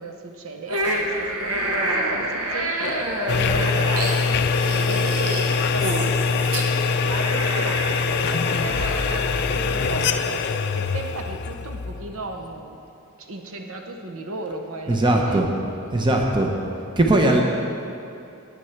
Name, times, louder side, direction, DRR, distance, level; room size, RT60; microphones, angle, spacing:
voice 1, 0.0-12.8 13.2-15.4, right 2 dB, 70° right, 4 dB, 0.9 m, -36 dB
sound 1, 0.7-9.9, right 1 dB, 90° right, 1.3 m, -28 dB
sound 2, 3.3-12.4, left 5 dB, 50° left, 0.4 m, -23 dB
voice 2, 14.9-15.5 15.9-16.5 17.0-17.4, right 1 dB, 20° right, 1 dB, 0.8 m, -19 dB
9.6 x 9.3 x 5.9 m, 2.6 s
head